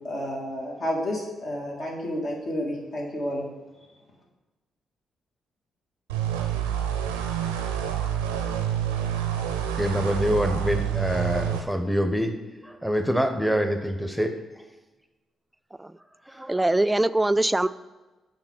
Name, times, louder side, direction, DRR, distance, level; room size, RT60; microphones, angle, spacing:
voice 1, 0.0-3.5, equal, 55° left, -1 dB, 1.8 m, -30 dB
sound 1, 6.1-11.6, right 9 dB, 90° right, 0.4 m, -28 dB
voice 2, 9.8-12.3 12.6-14.6 16.3-16.4, equal, ahead, 6 dB, 0.9 m, -25 dB
voice 3, 16.4-17.7, right 1 dB, 15° right, 15 dB, 0.3 m, -22 dB
5.6 x 4.4 x 6.1 m, 1.2 s
hypercardioid pair, 40°, 0 cm